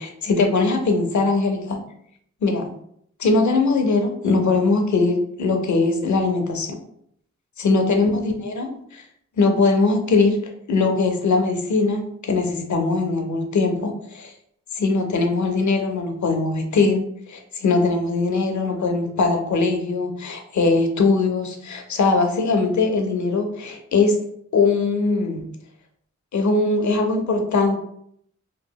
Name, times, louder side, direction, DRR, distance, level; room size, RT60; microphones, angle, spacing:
voice 1, 0.0-1.8 2.4-2.7 3.2-6.8 7.6-9.0 9.4-10.4 10.7-14.3 14.7-24.1 24.5-25.5 26.3-27.8, left 3 dB, 75° left, 5 dB, 0.5 m, -21 dB
2.8 x 2.4 x 2.2 m, 0.68 s
wide cardioid pair, 60°, 30 cm